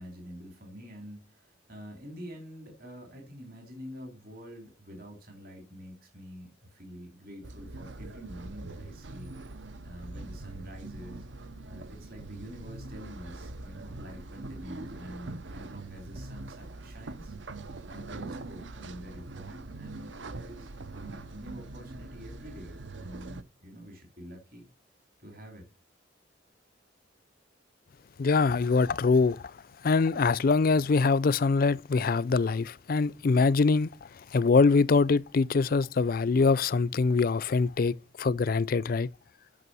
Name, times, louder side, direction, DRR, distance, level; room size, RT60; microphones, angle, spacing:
voice 1, 0.0-9.3 9.8-11.2 11.7-17.3 17.9-24.7 25.2-25.7, equal, 50° right, 3.1 m, -46 dB
sound 1, 7.4-23.4, right 2 dB, 75° right, 0.7 m, -43 dB
voice 2, 28.2-39.1, left 4 dB, 50° left, 0.4 m, -24 dB
9.7 x 6.1 x 6.1 m
head